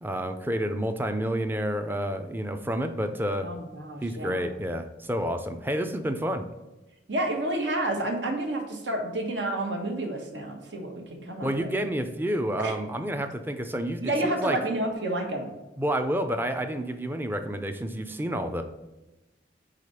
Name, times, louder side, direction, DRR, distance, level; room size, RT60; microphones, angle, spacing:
voice 1, 0.0-3.5 4.0-6.5 11.4-14.6 15.8-18.6, equal, 10° right, 7 dB, 0.5 m, -29 dB
voice 2, 3.4-4.5 7.1-11.7 12.6-12.8 14.0-15.5, right 1 dB, 80° right, 2 dB, 1.4 m, -30 dB
5.0 x 4.2 x 5.6 m, 1.1 s
head